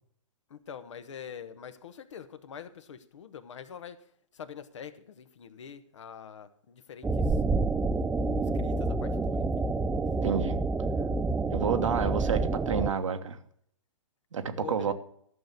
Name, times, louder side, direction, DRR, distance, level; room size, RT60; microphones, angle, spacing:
voice 1, 0.5-4.0 4.3-7.4 8.4-9.7 14.6-14.9, left 8 dB, 65° left, 1.2 m, -45 dB
sound 1, 7.0-12.9, right 3 dB, 5° right, 0.4 m, -28 dB
voice 2, 10.2-10.6 11.5-13.4 14.3-14.9, right 6 dB, 70° right, 1.3 m, -29 dB
13.0 x 6.4 x 6.8 m
figure-of-eight pair, 110°, 17 cm